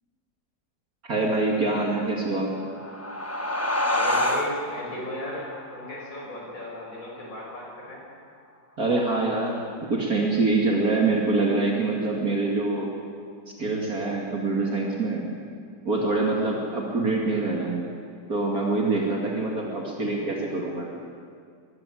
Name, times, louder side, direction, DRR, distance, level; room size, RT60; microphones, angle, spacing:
voice 1, 1.0-2.5 8.8-12.9 13.5-15.3 15.8-17.9 18.3-20.9, right 3 dB, 55° right, -1 dB, 2.9 m, -25 dB
sound 1, 2.5-7.7, left 1 dB, 10° left, 0.8 m, -29 dB
voice 2, 3.9-8.0, left 1 dB, 45° left, -3 dB, 6.6 m, -36 dB
23.0 x 15.5 x 9.3 m, 2.1 s
omnidirectional pair, 1.9 m